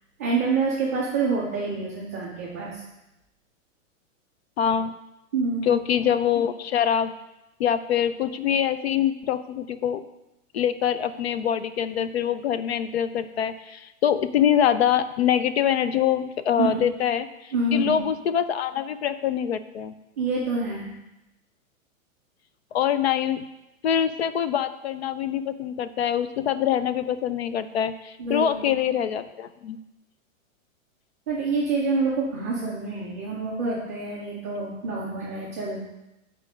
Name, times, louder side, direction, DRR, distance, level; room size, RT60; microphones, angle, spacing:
voice 1, 0.2-2.8 5.3-5.8 16.6-16.8 17.5-18.0 20.2-20.9 28.2-28.7 31.3-35.9, right 3 dB, 15° right, -7 dB, 0.4 m, -27 dB
voice 2, 4.6-4.9 5.7-7.1 7.6-10.0 10.5-19.9 22.7-23.4 23.8-29.8, left 9 dB, 50° left, 12 dB, 0.5 m, -24 dB
8.4 x 4.4 x 4.9 m, 0.93 s
supercardioid pair, 175°, 40 cm